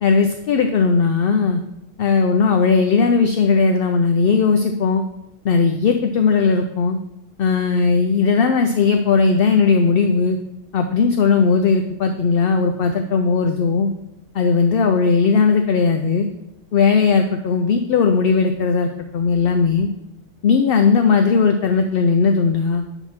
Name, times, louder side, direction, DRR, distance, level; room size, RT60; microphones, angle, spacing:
voice 1, 0.0-1.6 2.0-5.0 5.4-7.0 7.4-10.4 10.7-13.9 14.3-16.3 16.7-19.9 20.4-22.8, left 5 dB, 65° left, 5 dB, 0.6 m, -17 dB
8.0 x 3.0 x 5.6 m, 0.85 s
omnidirectional pair, 1.3 m